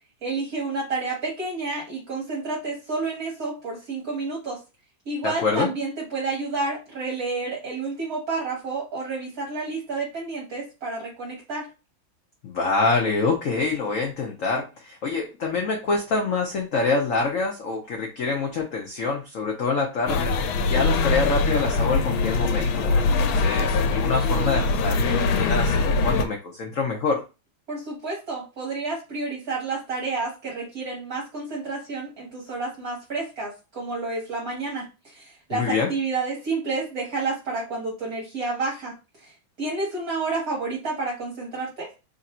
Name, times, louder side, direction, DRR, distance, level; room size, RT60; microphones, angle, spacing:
voice 1, 0.2-4.6 5.1-11.7 27.7-41.9, right 3 dB, 50° right, -3 dB, 1.4 m, -30 dB
voice 2, 5.2-5.7 12.4-27.2 35.5-35.9, left 4 dB, 70° left, 1 dB, 0.8 m, -26 dB
sound 1, 20.1-26.3, left 3 dB, 85° left, 1.4 m, -22 dB
3.4 x 2.6 x 4.1 m, 0.29 s
omnidirectional pair, 2.2 m